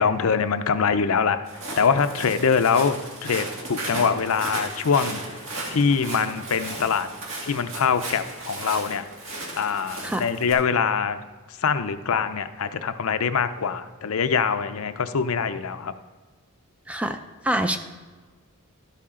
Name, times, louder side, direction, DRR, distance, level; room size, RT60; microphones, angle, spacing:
voice 1, 0.0-1.4 1.8-5.2 5.7-7.1 7.4-9.0 9.6-11.2 11.5-15.9, left 6 dB, 75° left, 11 dB, 0.5 m, -23 dB
Walk footsteps, 1.4-10.5, right 2 dB, 60° right, 2.0 m, -35 dB
voice 2, 16.9-17.2 17.4-17.8, right 1 dB, 5° right, 8 dB, 0.4 m, -25 dB
12.5 x 8.5 x 3.7 m, 1.4 s
head